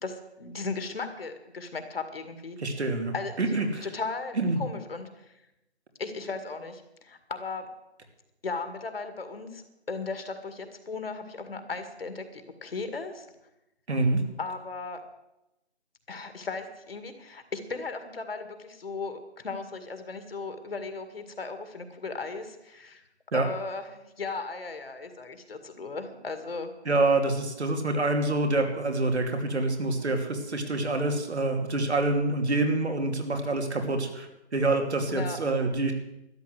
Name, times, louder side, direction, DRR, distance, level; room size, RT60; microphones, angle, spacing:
voice 1, 0.0-2.6 3.1-3.3 3.8-5.3 6.0-7.7 8.4-13.3 14.4-15.0 16.1-23.0 23.3-26.7 35.1-35.4, left 4 dB, 60° left, 8 dB, 2.1 m, -36 dB
voice 2, 2.6-3.9 4.4-4.6 13.9-14.2 23.3-23.5 26.8-35.9, right 2 dB, 70° right, 4 dB, 2.9 m, -26 dB
13.0 x 9.9 x 7.9 m, 0.90 s
figure-of-eight pair, 165°, 34 cm